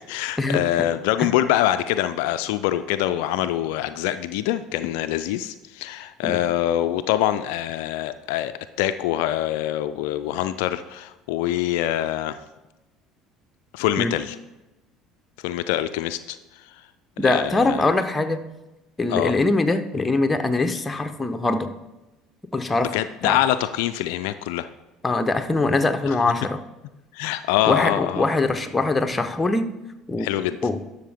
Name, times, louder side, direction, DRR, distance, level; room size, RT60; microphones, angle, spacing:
voice 1, 0.0-8.5 8.8-12.4 13.7-14.4 15.4-16.8 17.2-17.8 19.1-19.4 22.8-24.7 26.1-26.2 27.1-28.3 30.2-30.6, left 13 dB, 70° left, 11 dB, 0.3 m, -24 dB
voice 2, 17.2-18.4 19.0-21.7 22.5-23.0 23.2-23.4 25.0-26.6 27.7-29.7 30.1-30.3 30.6-30.8, left 2 dB, 15° left, 7 dB, 0.9 m, -22 dB
11.5 x 6.4 x 3.6 m, 1.0 s
hypercardioid pair, 65°, 0 cm